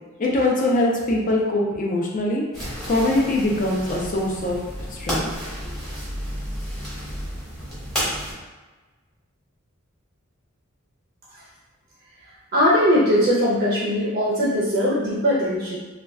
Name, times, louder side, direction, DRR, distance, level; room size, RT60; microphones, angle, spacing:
voice 1, 0.2-2.4 2.9-4.6 4.9-5.3, left 1 dB, 40° left, -2 dB, 0.4 m, -22 dB
sound 1, 2.5-8.3, equal, 5° left, 1.0 m, -31 dB
voice 2, 12.5-15.8, equal, 40° right, -6 dB, 0.5 m, -20 dB
2.3 x 2.2 x 3.4 m, 1.3 s
head